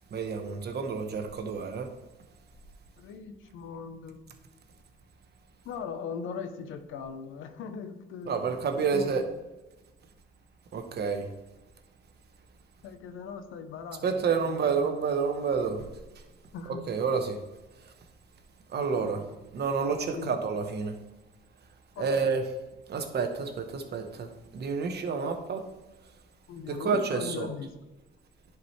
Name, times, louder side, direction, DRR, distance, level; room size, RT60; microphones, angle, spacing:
voice 1, 0.1-1.9 8.3-9.2 10.7-11.3 14.0-15.9 16.9-17.4 18.7-19.2 19.5-21.0 22.0-22.4 22.9-25.6 26.7-27.5, right 5 dB, 55° right, 5 dB, 1.1 m, -29 dB
voice 2, 3.0-4.3 5.6-8.4 8.7-9.3 12.8-14.8 16.5-16.8 19.0-19.1 20.1-20.4 21.9-22.3 25.2-25.3 26.5-27.7, left 6 dB, 85° left, 9 dB, 0.8 m, -39 dB
10.5 x 4.7 x 3.2 m, 1.1 s
cardioid pair, 90°, 20 cm